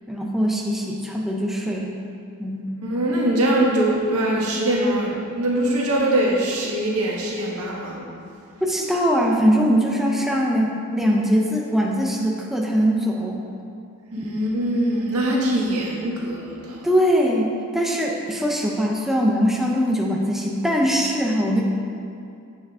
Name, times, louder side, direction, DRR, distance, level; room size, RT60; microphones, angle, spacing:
voice 1, 0.1-2.0 2.4-2.6 8.6-13.5 14.2-14.3 16.8-21.6, equal, ahead, -2 dB, 0.6 m, -21 dB
voice 2, 2.8-8.0 14.1-16.9, right 1 dB, 80° right, -3 dB, 1.6 m, -22 dB
8.1 x 7.1 x 3.7 m, 2.5 s
head